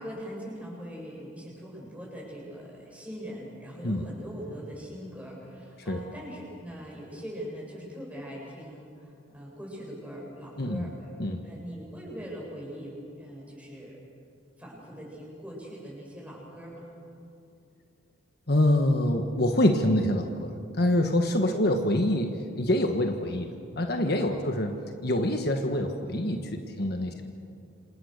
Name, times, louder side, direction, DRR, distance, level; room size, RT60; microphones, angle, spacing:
voice 1, 0.0-11.1 11.4-14.0 14.6-16.9 21.5-21.7 24.2-24.5 27.1-27.2, equal, 5° right, -3 dB, 7.6 m, -41 dB
voice 2, 10.6-10.9 11.2-11.4 18.5-23.5 23.8-24.7 25.0-27.2, left 1 dB, 55° left, 4 dB, 1.5 m, -25 dB
28.0 x 27.0 x 6.7 m, 2.5 s
head